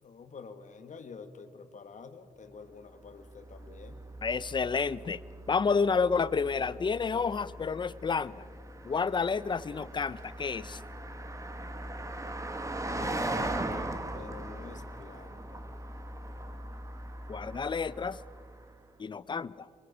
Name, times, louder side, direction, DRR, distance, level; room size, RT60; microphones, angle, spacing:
voice 1, 0.0-4.0 12.8-13.9 14.1-15.6, left 5 dB, 65° left, 9 dB, 1.4 m, -48 dB
Car passing by, 3.0-18.8, right 1 dB, 20° right, 1.3 m, -40 dB
voice 2, 4.2-5.2 5.5-8.5 8.8-10.8 17.3-18.2 19.0-19.7, left 5 dB, 35° left, 18 dB, 0.5 m, -30 dB
23.0 x 20.5 x 6.1 m, 2.3 s
wide cardioid pair, 170°, 14 cm